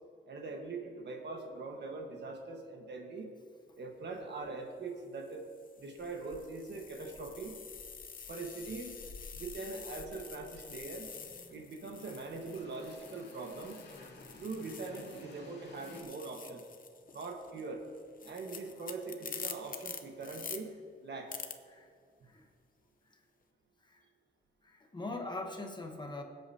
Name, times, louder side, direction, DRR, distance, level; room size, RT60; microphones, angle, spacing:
voice 1, 0.3-3.3 3.8-5.5 5.8-7.6 8.3-9.0 9.3-11.1 11.5-13.8 14.4-16.6 17.1-17.8 18.2-20.7 21.0-21.3, right 3 dB, 60° right, 2 dB, 1.4 m, -42 dB
sound 1, 4.2-4.5 5.2-15.4 15.7-20.6 21.3-21.5, left 6 dB, 45° left, 0.7 m, -48 dB
race car subaru screeching tires, 6.0-16.0, left 3 dB, 65° left, 2.2 m, -55 dB
voice 2, 24.6-26.2, left 2 dB, 20° left, 3 dB, 1.0 m, -42 dB
22.5 x 7.9 x 2.8 m, 2.2 s
wide cardioid pair, 160°, 20 cm